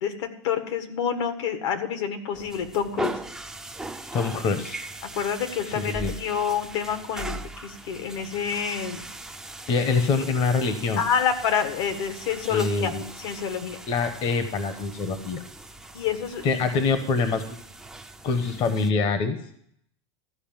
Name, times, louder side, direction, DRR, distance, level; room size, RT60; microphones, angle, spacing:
voice 1, 0.0-3.2 5.1-9.0 11.0-12.9 13.2-13.8 15.9-16.6, left 7 dB, 70° left, 8 dB, 1.7 m, -28 dB
sound 1, 2.3-18.9, right 2 dB, 5° right, 0.5 m, -40 dB
voice 2, 4.1-4.8 5.7-6.1 9.7-11.0 12.5-13.0 13.9-15.4 16.4-17.6 18.2-19.4, left 4 dB, 35° left, 9 dB, 1.0 m, -25 dB
14.0 x 5.0 x 8.8 m, 0.68 s
supercardioid pair, 150°, 15 cm